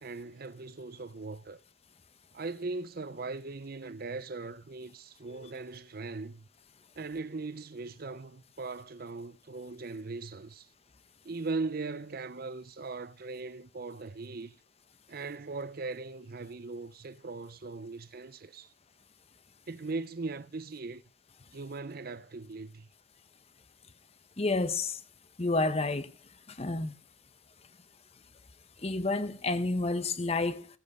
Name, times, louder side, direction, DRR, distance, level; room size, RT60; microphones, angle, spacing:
voice 1, 0.0-1.6 2.3-6.5 7.0-10.7 11.2-14.5 15.1-18.7 19.7-21.0 21.5-22.9, right 3 dB, 50° right, 0.6 m, -39 dB
voice 2, 24.4-25.0 25.4-26.1 26.5-26.9 28.8-30.7, left 3 dB, 35° left, 0.9 m, -30 dB
16.5 x 8.3 x 5.4 m
head